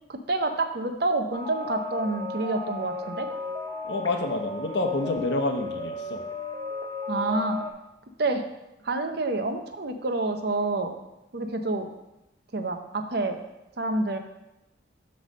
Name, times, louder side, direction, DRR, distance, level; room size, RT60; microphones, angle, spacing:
voice 1, 0.1-3.3 7.1-7.6 8.2-8.4 8.8-11.0 11.3-11.9 12.5-13.4 13.8-14.2, right 2 dB, 55° right, 6 dB, 0.7 m, -28 dB
sound 1, 1.3-7.7, left 3 dB, 20° left, 0.7 m, -35 dB
voice 2, 3.8-6.2, left 2 dB, 65° left, 5 dB, 0.8 m, -28 dB
8.0 x 3.3 x 6.4 m, 0.96 s
head